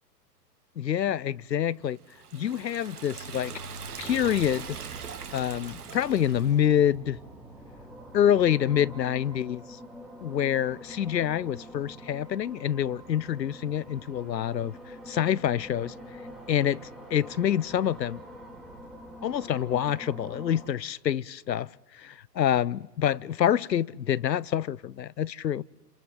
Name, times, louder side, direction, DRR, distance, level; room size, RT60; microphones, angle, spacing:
voice 1, 0.8-2.0 2.3-3.5 4.0-4.8 5.3-7.2 8.1-9.6 10.2-14.8 15.1-15.9 16.5-18.2 19.2-21.7 22.0-25.6, left 10 dB, 80° left, 0.6 m, -26 dB
Liquid, 2.0-6.7, right 5 dB, 60° right, 2.0 m, -41 dB
sound 1, 4.1-20.7, equal, ahead, 2.4 m, -46 dB
29.5 x 27.0 x 3.8 m
figure-of-eight pair, 110°, 50 cm